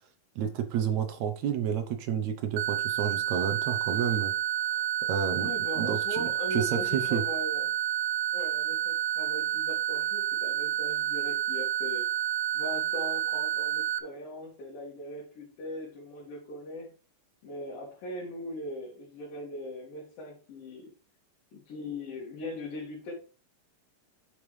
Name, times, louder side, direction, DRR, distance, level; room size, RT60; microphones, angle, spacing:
voice 1, 0.4-4.3 4.7-5.5 5.8-7.2, right 8 dB, 70° right, 7 dB, 2.0 m, -30 dB
sound 1, 2.6-14.0, right 11 dB, 90° right, 2.3 m, -29 dB
voice 2, 5.4-7.7 8.3-12.0 12.5-16.9 17.4-20.9 21.5-23.1, left 1 dB, 90° left, -5 dB, 3.9 m, -39 dB
8.2 x 7.1 x 3.3 m, 0.37 s
omnidirectional pair, 3.9 m